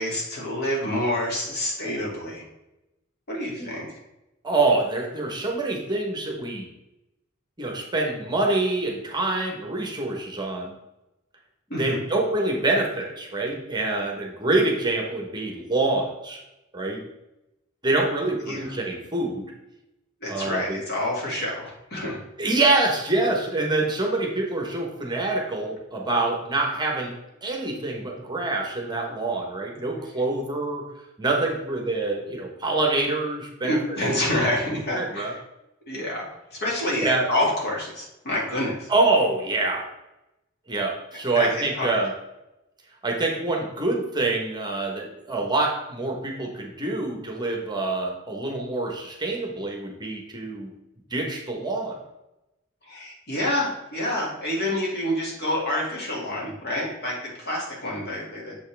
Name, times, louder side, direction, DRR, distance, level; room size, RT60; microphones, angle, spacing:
voice 1, 0.0-2.5 3.3-4.0 11.7-12.0 18.5-18.7 20.2-22.2 33.6-35.4 35.9-38.9 41.3-42.0 52.8-58.6, left 1 dB, 55° left, -3 dB, 2.3 m, -28 dB
voice 2, 4.4-6.7 7.6-10.7 11.8-16.4 16.7-17.0 17.8-19.4 20.3-20.8 22.4-27.1 27.4-30.9 31.2-33.8 34.1-34.6 34.9-35.3 37.0-37.3 38.9-39.9 40.7-42.1 43.0-50.7 51.1-52.0, right 2 dB, 20° right, 0 dB, 1.1 m, -26 dB
7.0 x 5.5 x 3.3 m, 0.93 s
head